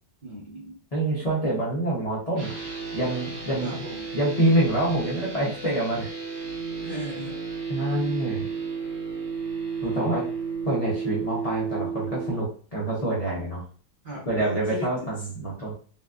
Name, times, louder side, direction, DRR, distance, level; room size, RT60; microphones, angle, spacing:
voice 1, 0.2-0.8 3.6-4.1 6.8-7.3 14.0-15.1, equal, 40° right, -5 dB, 0.9 m, -37 dB
voice 2, 0.9-2.6 2.9-3.8 4.1-6.1 7.7-8.5 9.8-10.2 10.7-13.6 14.3-15.7, right 1 dB, 55° left, -7 dB, 0.4 m, -26 dB
sound 1, 2.3-12.3, right 5 dB, 70° right, 0.6 m, -33 dB
3.9 x 2.3 x 2.4 m, 0.43 s
omnidirectional pair, 2.0 m